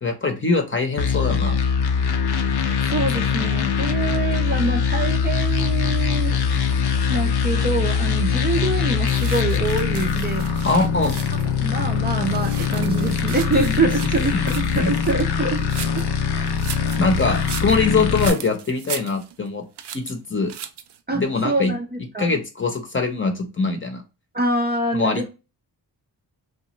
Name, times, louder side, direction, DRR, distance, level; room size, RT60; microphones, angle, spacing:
voice 1, 0.0-1.6 10.6-11.1 13.5-13.7 14.2-14.4 14.7-14.9 17.0-19.6 19.9-20.5 21.1-21.7 22.2-24.0 24.9-25.2, left 3 dB, 30° left, 0.8 m, -23 dB
sound 1, 1.0-18.3, left 6 dB, 65° left, 0.6 m, -22 dB
voice 2, 2.9-6.4 6.7-10.5 11.6-15.7 16.0-16.1 21.1-22.3 24.3-25.3, right 3 dB, 25° right, 0.5 m, -25 dB
sound 2, 9.0-11.6 12.0-16.1 16.5-19.5 19.8-20.1 20.5-21.0, right 9 dB, 70° right, 0.5 m, -37 dB
2.9 x 2.2 x 3.0 m
cardioid pair, 85°, 43 cm